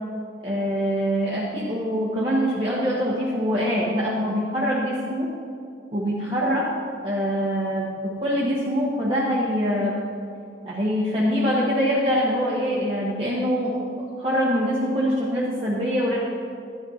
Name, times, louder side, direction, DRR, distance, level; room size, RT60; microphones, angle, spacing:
voice 1, 0.4-5.3 5.9-6.7 7.0-10.0 10.6-16.2, equal, 25° right, -7 dB, 1.2 m, -24 dB
11.5 x 11.0 x 2.8 m, 2.3 s
head